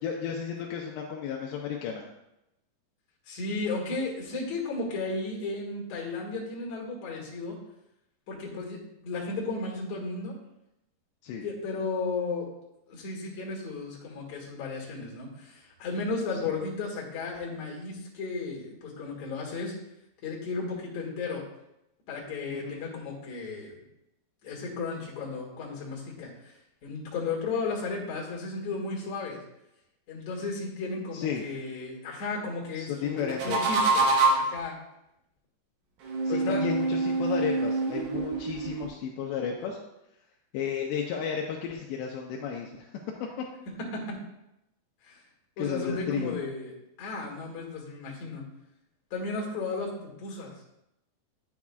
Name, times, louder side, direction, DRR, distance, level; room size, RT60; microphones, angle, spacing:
voice 1, 0.0-2.0 11.2-11.4 16.5-16.6 22.5-22.9 31.1-31.4 32.8-33.6 36.2-39.8 40.5-42.9 45.6-46.4, left 7 dB, 80° left, 0 dB, 2.6 m, -33 dB
voice 2, 3.3-7.6 8.3-10.3 11.4-12.5 12.9-19.7 20.2-21.4 22.1-23.7 24.4-26.5 26.8-29.4 30.1-34.1 34.3-34.7 36.3-36.7 43.9-44.2 45.0-45.2 45.6-46.7 47.0-48.4 49.1-50.5, left 3 dB, 50° left, -3 dB, 2.6 m, -34 dB
sound 1, 33.2-34.6 36.0-38.9, right 3 dB, 65° right, 2.7 m, -26 dB
10.5 x 7.3 x 2.3 m, 0.87 s
omnidirectional pair, 5.3 m